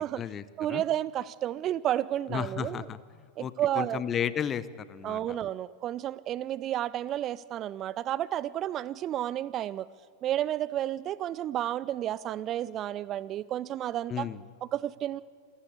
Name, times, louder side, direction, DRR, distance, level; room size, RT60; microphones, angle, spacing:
voice 1, 0.0-0.8 2.3-3.0 3.4-5.2 14.1-14.4, left 8 dB, 25° left, 17 dB, 0.9 m, -33 dB
voice 2, 0.6-2.9 3.4-4.0 5.0-9.9 10.2-14.3 14.6-15.2, right 12 dB, 30° right, 20 dB, 0.5 m, -31 dB
27.5 x 14.5 x 8.4 m, 2.1 s
figure-of-eight pair, 90°, 0 cm